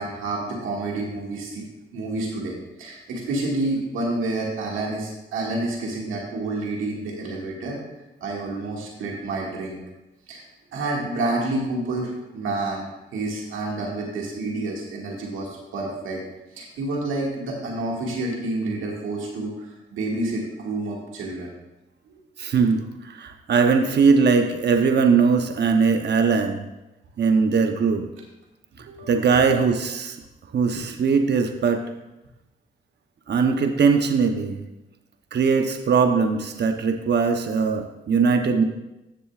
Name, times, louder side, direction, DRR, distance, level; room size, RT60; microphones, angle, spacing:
voice 1, 0.0-1.7 1.9-7.8 8.2-9.8 10.3-10.4 10.7-16.2 16.5-21.5 22.1-22.2 28.9-29.1, right 2 dB, 90° right, -2 dB, 2.0 m, -29 dB
voice 2, 22.4-26.6 27.2-28.0 29.1-30.2 30.5-31.8 33.3-34.6 35.3-38.6, right 5 dB, 55° right, 5 dB, 0.8 m, -20 dB
15.0 x 6.8 x 2.4 m, 0.96 s
supercardioid pair, 55°, 20 cm